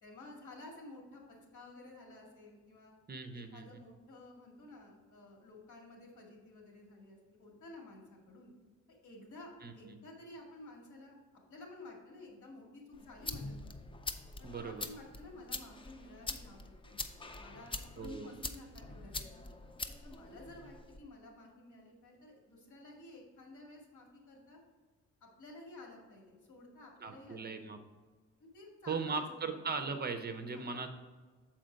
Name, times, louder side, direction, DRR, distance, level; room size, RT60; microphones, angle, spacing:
voice 1, 0.0-2.9 3.3-8.5 8.9-11.2 11.5-13.8 14.4-17.0 17.4-19.3 20.0-24.6 25.2-27.8 28.4-29.9 30.4-30.7, left 2 dB, 75° left, 0 dB, 2.1 m, -53 dB
voice 2, 3.1-3.8 9.6-10.0 14.4-14.9 18.0-18.3 27.0-27.8 28.9-30.9, right 4 dB, 35° right, 7 dB, 0.6 m, -39 dB
sound 1, 12.9-21.0, left 3 dB, 20° left, 0.4 m, -44 dB
7.4 x 4.4 x 5.1 m, 1.4 s
cardioid pair, 125°, 30 cm